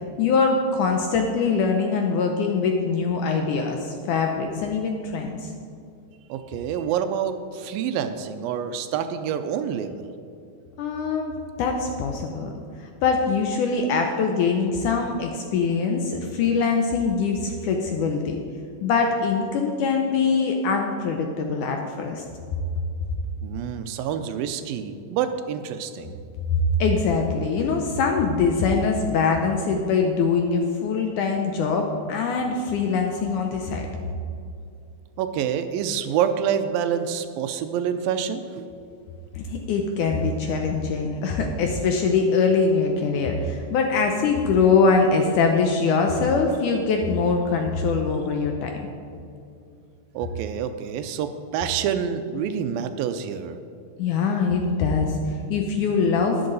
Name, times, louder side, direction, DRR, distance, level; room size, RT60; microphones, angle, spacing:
voice 1, 0.2-5.5 10.8-11.3 11.6-12.5 12.8-18.4 18.8-22.2 26.5-33.8 39.3-48.9 54.0-56.5, left 4 dB, 75° left, 3 dB, 1.9 m, -23 dB
voice 2, 6.3-10.1 23.4-26.2 35.2-38.6 50.1-53.6, right 8 dB, 80° right, 9 dB, 2.3 m, -27 dB
12.5 x 10.5 x 4.0 m, 2.5 s
omnidirectional pair, 4.3 m